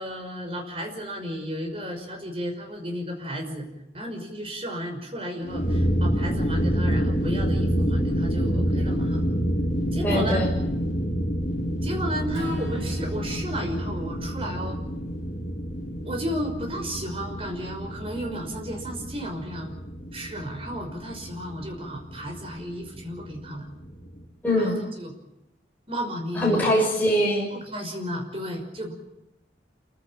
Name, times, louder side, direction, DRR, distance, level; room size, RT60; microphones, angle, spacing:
voice 1, 0.0-3.7 3.9-9.2 9.9-10.4 11.8-14.8 16.0-19.7 20.1-23.7 24.6-25.1 25.9-26.6 27.5-28.9, equal, 30° right, 3 dB, 5.7 m, -33 dB
sound 1, 5.4-24.2, equal, 45° left, 4.3 m, -28 dB
voice 2, 10.0-10.5 24.4-24.8 26.3-27.5, equal, 10° left, -3 dB, 6.4 m, -22 dB
Acoustic guitar / Strum, 12.3-16.6, right 1 dB, 80° right, 7.9 m, -41 dB
27.5 x 16.0 x 9.0 m, 0.89 s
head